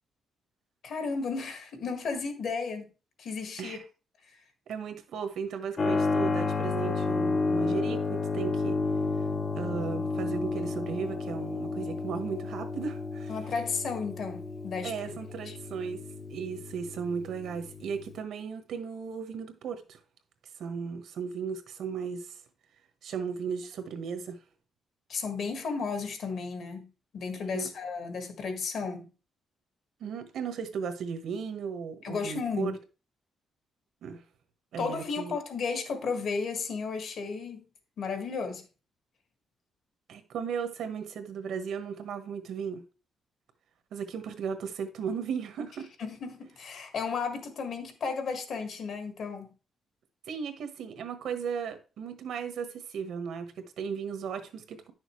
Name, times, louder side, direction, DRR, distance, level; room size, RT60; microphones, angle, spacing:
voice 1, 0.8-2.9 3.2-3.8 13.3-14.9 15.4-15.6 25.1-29.1 32.0-32.8 34.8-37.6 38.0-38.6 46.0-49.5, left 5 dB, 55° left, 1.7 m, -34 dB
voice 2, 4.7-8.8 9.6-13.4 14.8-16.0 16.3-20.0 20.6-22.4 23.0-24.4 27.5-27.7 30.0-32.8 34.0-34.2 34.7-35.4 40.1-42.8 43.9-45.9 50.3-54.9, right 6 dB, 70° right, 1.3 m, -36 dB
Keyboard (musical), 5.8-18.2, left 3 dB, 30° left, 0.8 m, -31 dB
10.0 x 6.4 x 3.2 m
cardioid pair, 165°, 0 cm